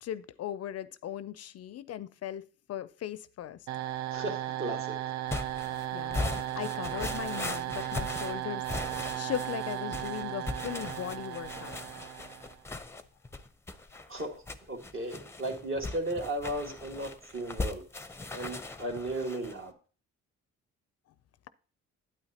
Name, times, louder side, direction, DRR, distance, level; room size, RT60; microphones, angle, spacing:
voice 1, 0.0-3.6 5.9-11.8, left 11 dB, 55° left, 0.4 m, -38 dB
sound 1, 3.7-12.6, right 13 dB, 65° right, 0.5 m, -36 dB
voice 2, 4.1-5.0 14.1-14.4 14.7-17.8 18.3-19.7, right 1 dB, 45° right, 1.8 m, -35 dB
sound 2, 5.3-19.6, left 2 dB, 10° left, 0.6 m, -39 dB
8.9 x 8.8 x 2.8 m
cardioid pair, 90°, 30 cm